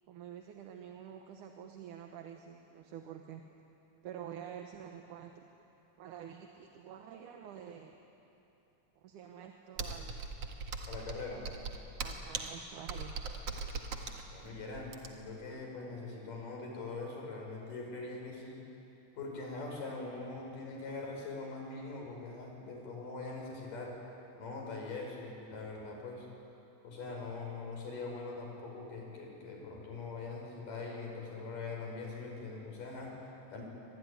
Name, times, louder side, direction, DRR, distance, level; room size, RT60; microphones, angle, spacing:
voice 1, 0.1-3.4 4.0-5.5 6.0-8.0 9.0-10.2 12.0-13.2, right 9 dB, 75° right, 4 dB, 2.6 m, -48 dB
Computer keyboard, 9.8-15.4, right 4 dB, 50° right, 2.6 m, -40 dB
voice 2, 10.9-11.5 14.3-18.6 19.2-24.0 24.4-26.3 26.8-33.6, left 3 dB, 80° left, 0 dB, 6.6 m, -42 dB
24.5 x 24.0 x 9.8 m, 2.9 s
omnidirectional pair, 3.7 m